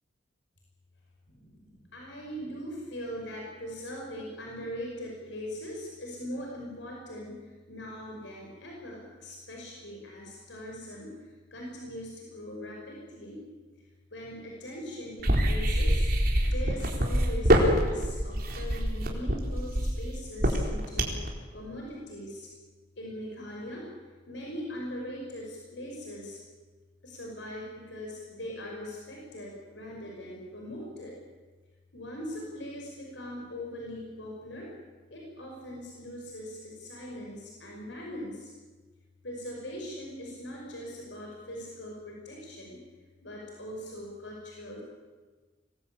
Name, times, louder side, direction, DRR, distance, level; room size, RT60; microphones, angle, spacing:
voice 1, 1.3-7.4 7.7-11.2 11.5-13.5 14.1-16.1 16.5-22.5 23.0-23.9 24.3-26.4 27.0-31.2 31.9-34.7 35.1-38.5 39.2-42.8 43.2-44.8, equal, 85° left, -1 dB, 5.9 m, -41 dB
sound 1, 15.2-21.3, equal, 55° right, 4.2 m, -25 dB
25.5 x 19.0 x 8.7 m, 1.4 s
head